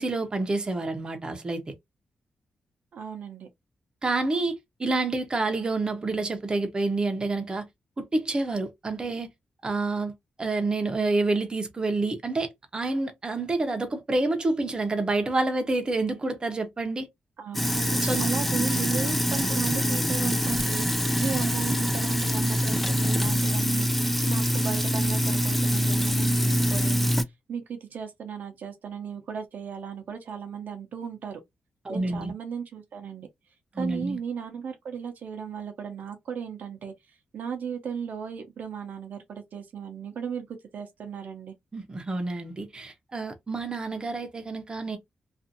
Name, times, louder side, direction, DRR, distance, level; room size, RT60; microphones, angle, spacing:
voice 1, 0.0-1.7 4.0-7.7 8.0-9.3 9.6-10.1 10.4-17.1 18.0-18.2 18.8-18.9 31.8-32.3 33.7-34.2 41.7-45.0, right 2 dB, 30° right, 0.7 m, -28 dB
voice 2, 2.9-3.5 17.4-20.9 21.2-23.9 24.2-27.1 27.5-31.4 31.9-33.3 33.8-36.9 37.3-41.5, right 7 dB, 70° right, 0.6 m, -36 dB
Sink (filling or washing), 17.5-27.2, equal, 5° left, 0.4 m, -25 dB
2.6 x 2.4 x 2.6 m
cardioid pair, 95°, 3 cm